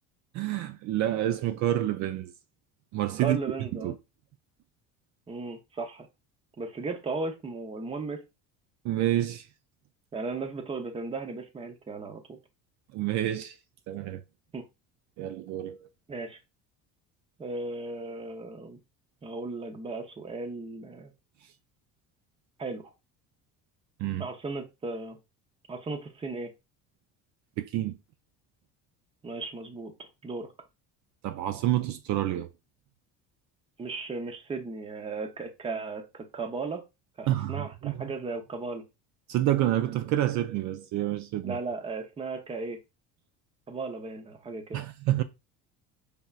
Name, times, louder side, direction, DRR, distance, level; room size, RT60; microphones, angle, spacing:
voice 1, 0.3-2.3 2.9-3.4 3.8-4.0 8.8-9.5 12.9-13.6 13.9-14.2 15.2-15.9 24.0-24.3 27.6-28.0 31.2-32.5 37.3-38.1 39.3-41.6 44.7-45.2, right 13 dB, 55° right, 0.5 m, -28 dB
voice 2, 3.2-3.9 5.3-6.1 6.6-8.2 10.1-12.4 14.5-14.6 16.1-16.4 17.4-18.8 19.2-21.1 22.6-22.9 24.2-25.2 25.7-26.5 29.2-30.5 33.8-36.8 37.2-38.8 41.4-42.8 43.7-44.8, right 3 dB, 15° right, 0.7 m, -36 dB
5.3 x 3.5 x 2.4 m
cardioid pair, 140°, 33 cm